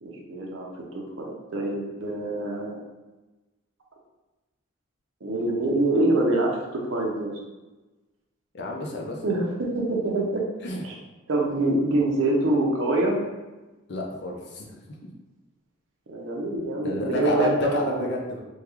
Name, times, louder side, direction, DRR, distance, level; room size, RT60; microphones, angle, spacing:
voice 1, 0.0-2.8 5.2-7.3 9.2-10.4 10.8-10.9 11.3-13.2 16.1-18.0, right 2 dB, 75° right, -1 dB, 0.7 m, -25 dB
voice 2, 8.5-9.2 10.6-10.8 13.9-14.8 16.8-18.4, left 2 dB, 55° left, 0 dB, 0.5 m, -30 dB
3.6 x 2.3 x 3.0 m, 1.1 s
head